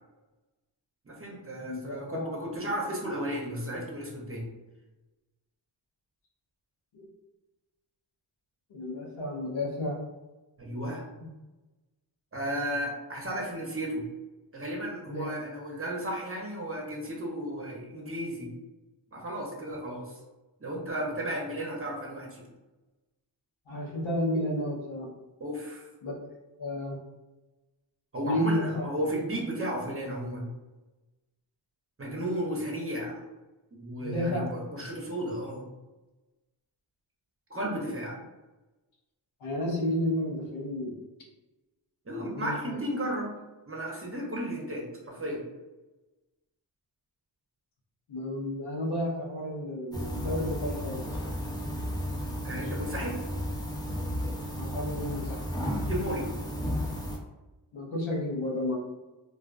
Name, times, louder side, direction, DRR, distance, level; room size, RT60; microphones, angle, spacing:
voice 1, 1.1-4.5 10.6-11.0 12.3-14.0 14.5-18.5 19.1-20.2 20.6-22.5 25.4-25.9 28.1-30.5 32.0-33.2 33.7-35.6 37.5-38.2 42.1-43.3 43.7-45.4 52.4-53.2 55.9-56.3, equal, 30° right, -1 dB, 0.8 m, -34 dB
voice 2, 1.6-2.3 6.9-7.1 8.7-10.0 11.2-11.3 15.1-15.3 23.7-25.1 26.0-26.1 26.6-27.0 28.2-28.9 34.0-34.5 39.4-41.0 42.3-42.8 48.1-51.0 52.6-52.8 54.6-55.4 57.7-58.8, left 1 dB, 90° left, -2 dB, 0.7 m, -32 dB
sound 1, 49.9-57.2, equal, 10° left, 0.6 m, -33 dB
2.4 x 2.2 x 2.4 m, 1.1 s
cardioid pair, 45°, 46 cm